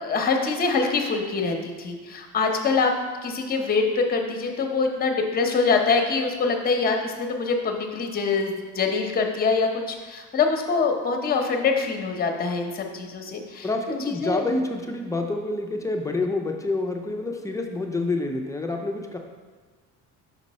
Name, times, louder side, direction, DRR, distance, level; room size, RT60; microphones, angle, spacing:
voice 1, 0.0-2.9 3.2-13.7 14.0-14.4, left 4 dB, 30° left, 3 dB, 0.8 m, -24 dB
voice 2, 13.6-19.2, left 2 dB, 10° left, 2 dB, 0.4 m, -27 dB
5.4 x 5.1 x 4.1 m, 1.4 s
cardioid pair, 145°, 33 cm